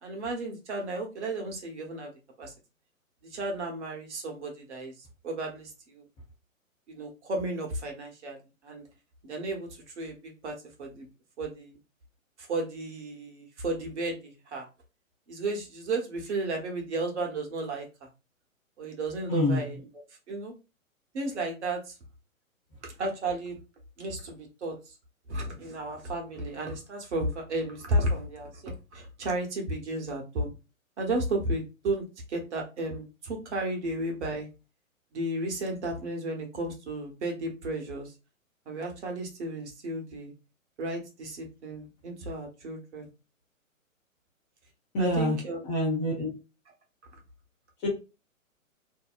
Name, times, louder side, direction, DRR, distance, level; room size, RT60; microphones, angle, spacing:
voice 1, 0.0-2.1 2.4-2.5 3.3-6.1 6.9-8.9 9.2-11.1 11.4-11.8 12.4-14.7 15.3-17.9 18.8-20.5 21.1-21.9 22.8-23.6 24.0-24.9 25.3-30.5 31.0-34.5 35.1-38.1 38.7-40.3 40.8-43.1 45.0-45.6, right 2 dB, 55° right, 2 dB, 1.0 m, -33 dB
voice 2, 19.3-19.6 44.9-45.4 45.6-46.3 47.8-47.9, left 1 dB, 15° left, -4 dB, 0.6 m, -26 dB
2.7 x 2.1 x 2.4 m, 0.29 s
figure-of-eight pair, 120°, 41 cm